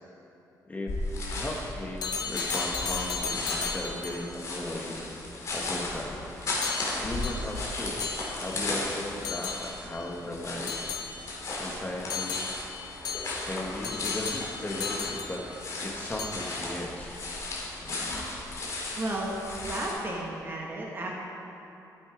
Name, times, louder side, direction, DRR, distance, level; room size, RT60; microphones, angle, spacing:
voice 1, 0.6-1.0 1.3-5.1 5.5-6.2 7.0-8.0 8.4-10.7 11.6-12.4 13.4-15.5 15.8-17.2 17.8-18.3, left 1 dB, 20° left, 0 dB, 1.4 m, -36 dB
sound 1, 0.9-19.9, left 2 dB, 50° left, 2.8 m, -35 dB
sound 2, 2.0-4.4 6.6-8.7 9.2-10.0 10.7-11.6 12.1-15.8 16.2-16.7, left 5 dB, 75° left, 0.8 m, -36 dB
voice 2, 19.0-19.4 19.6-21.2, right 1 dB, 30° right, -1 dB, 1.2 m, -33 dB
12.5 x 8.3 x 5.1 m, 3.0 s
cardioid pair, 140°, 7 cm